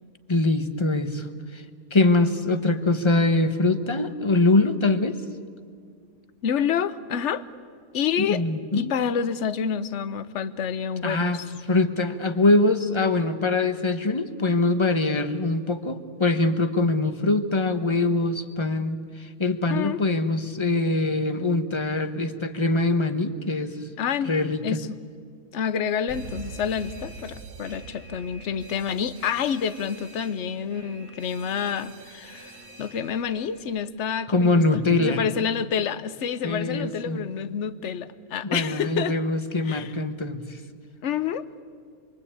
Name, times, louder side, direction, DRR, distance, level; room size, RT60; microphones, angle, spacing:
voice 1, 0.3-1.3 1.5-1.6 1.9-5.2 8.2-8.9 11.0-11.4 11.7-23.8 24.2-24.8 34.3-35.2 36.4-37.3 38.4-40.4, left 2 dB, 20° left, 9 dB, 1.0 m, -23 dB
voice 2, 6.4-7.5 7.9-8.4 8.7-11.4 19.7-20.0 24.0-24.3 24.6-24.9 25.5-34.6 35.0-39.2 39.6-39.9 41.0-41.5, left 7 dB, 55° left, 14 dB, 1.1 m, -28 dB
Alarm, 26.1-33.8, right 4 dB, 70° right, 2.0 m, -44 dB
27.0 x 23.0 x 8.6 m, 2.1 s
omnidirectional pair, 1.6 m